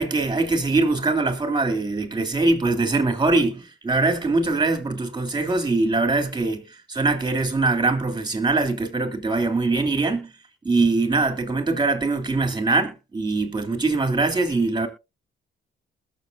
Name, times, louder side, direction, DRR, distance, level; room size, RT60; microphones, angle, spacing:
voice 1, 0.0-10.3 10.6-14.9, right 3 dB, 20° right, 3.4 m, -22 dB
20.5 x 7.3 x 2.7 m
cardioid pair, 90°, 20 cm